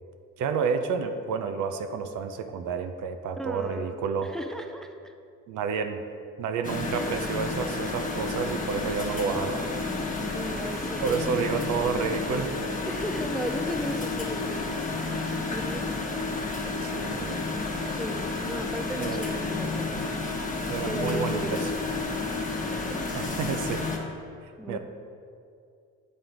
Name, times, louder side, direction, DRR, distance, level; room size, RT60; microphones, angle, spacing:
voice 1, 0.4-4.3 5.5-6.0 6.4-9.7 11.0-12.5 16.8-17.4 19.0-19.3 20.7-21.7 23.1-23.9 24.7-24.8, right 6 dB, 80° right, 7 dB, 0.6 m, -30 dB
voice 2, 3.4-3.9 4.2-5.1 10.3-11.6 12.9-14.7 15.3-15.9 16.6-20.0 20.8-21.7 22.4-23.0 24.6-24.8, equal, ahead, 6 dB, 0.4 m, -36 dB
sound 1, 6.6-24.0, left 3 dB, 25° left, 1.1 m, -31 dB
8.6 x 3.9 x 4.6 m, 2.4 s
cardioid pair, 90°, 30 cm